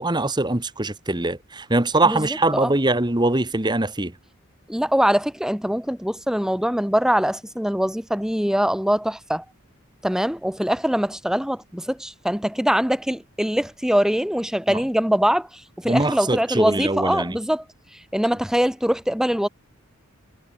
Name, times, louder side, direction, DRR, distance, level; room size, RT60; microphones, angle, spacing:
voice 1, 0.0-4.1 14.7-14.8 15.9-17.4, right 2 dB, 20° right, 1.6 m, -22 dB
voice 2, 4.7-9.4 10.0-17.6 18.1-19.5, equal, 5° right, 1.4 m, -23 dB
head